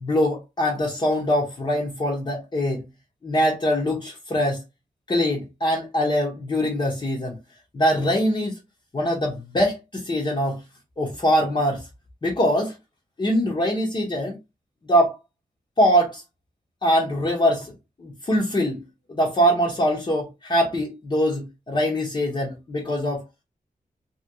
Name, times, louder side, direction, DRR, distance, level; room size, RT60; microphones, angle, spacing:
voice 1, 0.0-2.8 3.2-4.6 5.1-7.4 7.7-8.5 8.9-10.6 11.0-11.8 12.2-12.7 13.2-14.4 14.9-15.2 15.8-16.2 16.8-17.7 18.0-18.8 19.1-23.2, equal, 30° left, 0.8 m, -23 dB
2.9 x 2.8 x 2.6 m
wide cardioid pair, 160°, 15 cm